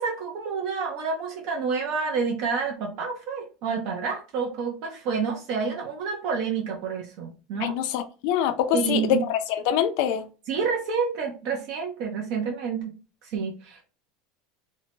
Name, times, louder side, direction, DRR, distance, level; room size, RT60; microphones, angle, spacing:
voice 1, 0.0-7.8 8.7-9.3 10.5-12.9 13.2-13.8, right 5 dB, 55° right, 0.6 m, -29 dB
voice 2, 7.6-10.2, left 10 dB, 65° left, 0.4 m, -25 dB
2.7 x 2.1 x 2.7 m
supercardioid pair, 150°, 0 cm